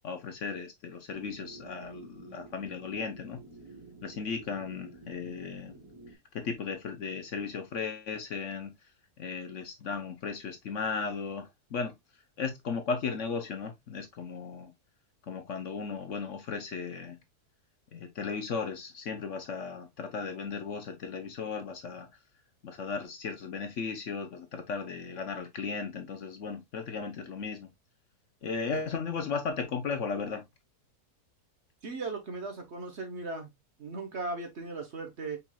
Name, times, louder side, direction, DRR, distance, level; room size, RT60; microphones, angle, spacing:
voice 1, 0.0-3.4 4.0-5.8 6.3-8.7 9.2-11.9 12.4-14.7 15.3-17.2 17.9-22.1 22.6-27.7 28.4-30.4, left 5 dB, 60° left, 1.0 m, -36 dB
sound 1, 1.1-6.1, right 3 dB, 25° right, 1.4 m, -50 dB
voice 2, 31.8-33.5 33.8-35.4, right 3 dB, 45° right, 1.3 m, -37 dB
5.3 x 4.4 x 2.2 m
omnidirectional pair, 1.6 m